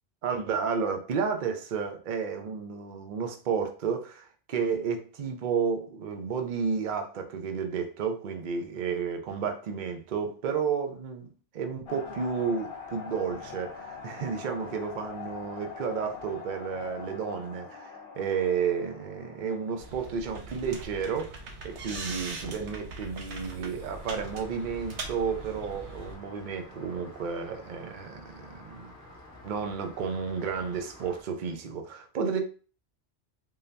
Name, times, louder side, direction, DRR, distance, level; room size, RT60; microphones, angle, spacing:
voice 1, 0.2-21.4 21.6-28.9 29.4-32.4, right 6 dB, 50° right, 0.7 m, -32 dB
sound 1, 11.9-20.9, left 6 dB, 65° left, 0.9 m, -43 dB
sound 2, 19.8-26.2, right 3 dB, 85° right, 1.0 m, -41 dB
Rain, 23.8-31.2, left 1 dB, 15° left, 1.2 m, -50 dB
3.8 x 2.7 x 3.3 m
omnidirectional pair, 1.1 m